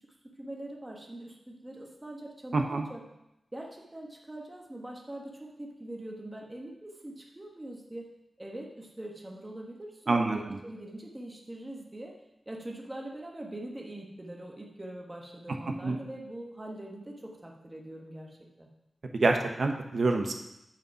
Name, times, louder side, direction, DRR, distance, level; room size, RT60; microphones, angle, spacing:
voice 1, 0.2-3.0 3.5-8.1 8.4-12.1 12.5-18.7, right 1 dB, 15° right, 0 dB, 1.2 m, -43 dB
voice 2, 2.5-2.9 10.1-10.6 15.8-16.0 19.1-20.3, right 3 dB, 55° right, 4 dB, 0.9 m, -27 dB
8.1 x 5.2 x 5.7 m, 0.88 s
wide cardioid pair, 140°, 0 cm